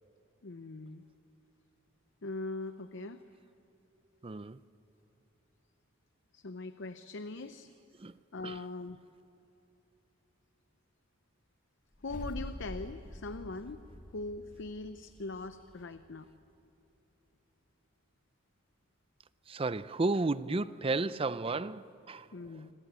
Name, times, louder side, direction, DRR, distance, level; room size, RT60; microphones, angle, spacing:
voice 1, 0.4-1.0 2.2-3.2 6.3-7.7 8.3-9.0 12.0-13.8 14.1-16.3 22.3-22.7, left 2 dB, 60° left, 10 dB, 0.7 m, -41 dB
voice 2, 4.2-4.6 8.0-8.1 8.4-8.6 19.5-22.3, right 3 dB, 25° right, 15 dB, 0.5 m, -32 dB
Woosh Dark Impact Deep Ghost, 11.9-16.3, equal, 40° left, 1.9 m, -46 dB
26.0 x 24.5 x 8.3 m, 2.9 s
head